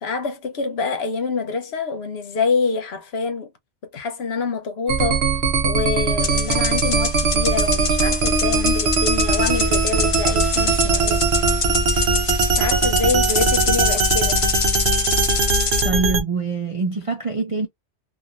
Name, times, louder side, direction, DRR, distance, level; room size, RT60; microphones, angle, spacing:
voice 1, 0.0-3.5 3.9-5.2 5.6-11.2 12.5-14.4, left 4 dB, 60° left, 1.0 m, -26 dB
sound 1, 4.9-16.2, right 3 dB, 65° right, 1.0 m, -20 dB
sound 2, 6.2-15.9, left 5 dB, 45° left, 0.4 m, -26 dB
voice 2, 15.8-17.7, right 4 dB, 45° right, 0.4 m, -24 dB
3.0 x 2.6 x 2.5 m
omnidirectional pair, 1.3 m